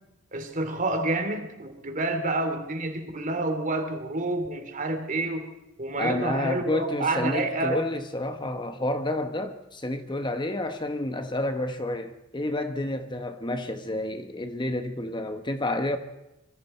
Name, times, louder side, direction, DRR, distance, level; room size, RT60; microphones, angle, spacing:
voice 1, 0.3-5.5 5.8-7.8, right 2 dB, 40° right, 2.9 m, -28 dB
voice 2, 6.0-16.0, left 1 dB, 25° left, 1.1 m, -30 dB
26.0 x 23.0 x 4.4 m
head